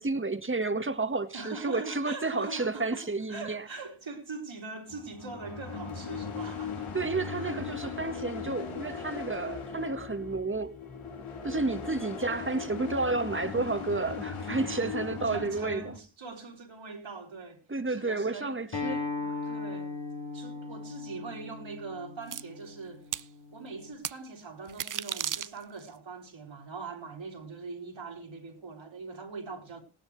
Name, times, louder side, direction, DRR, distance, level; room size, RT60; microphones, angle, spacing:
voice 1, 0.0-3.6 6.9-10.7 11.4-15.8 17.7-19.3, right 3 dB, 25° right, 1.7 m, -31 dB
voice 2, 1.3-8.0 11.5-11.9 15.3-20.0 20.3-23.1 23.5-29.8, right 4 dB, 65° right, 3.4 m, -42 dB
sound 1, 4.9-16.0, left 6 dB, 80° left, 3.0 m, -38 dB
Acoustic guitar, 18.7-23.9, left 4 dB, 55° left, 3.2 m, -38 dB
sound 2, 22.3-22.4 23.1-23.3 24.0-24.2 24.7-25.9, right 9 dB, 40° right, 0.6 m, -34 dB
17.0 x 12.5 x 3.3 m
cardioid pair, 45°, 49 cm